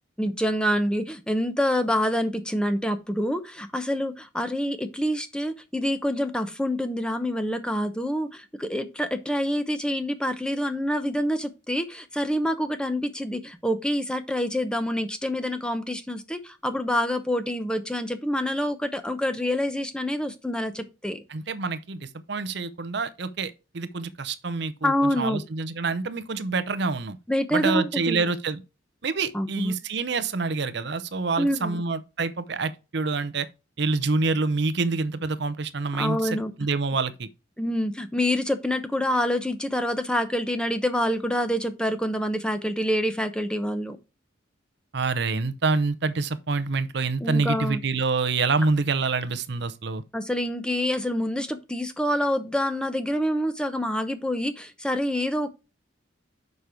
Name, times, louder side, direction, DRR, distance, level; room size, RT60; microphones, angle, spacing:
voice 1, 0.2-21.2 24.8-25.4 27.3-28.3 29.3-29.7 31.4-31.8 36.0-36.5 37.6-44.0 47.2-47.8 50.1-55.5, equal, 5° left, 0.8 m, -27 dB
voice 2, 21.3-27.2 27.5-28.6 29.0-33.5 33.8-36.3 36.6-37.3 44.9-50.0, right 4 dB, 60° right, 0.7 m, -27 dB
6.7 x 5.4 x 4.5 m
head